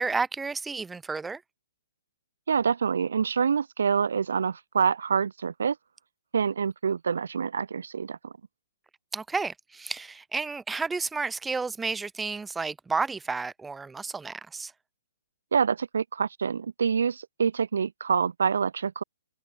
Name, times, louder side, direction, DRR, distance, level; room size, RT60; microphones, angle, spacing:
voice 1, 0.0-1.4 9.1-14.7, right 4 dB, 5° right, 1.0 m, -31 dB
voice 2, 2.5-5.8 6.3-8.3 15.5-19.0, right 6 dB, 80° right, 0.7 m, -26 dB
hypercardioid pair, 145°, 0 cm